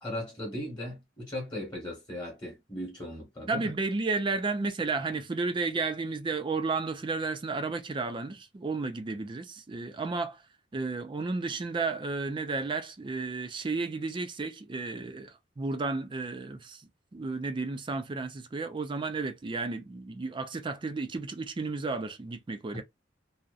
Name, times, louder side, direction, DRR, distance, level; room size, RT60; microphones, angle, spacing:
voice 1, 0.0-3.7 22.7-22.8, left 1 dB, 25° left, 1.0 m, -38 dB
voice 2, 3.5-10.4 10.7-22.8, right 3 dB, 25° right, 0.4 m, -33 dB
2.6 x 2.0 x 2.4 m
head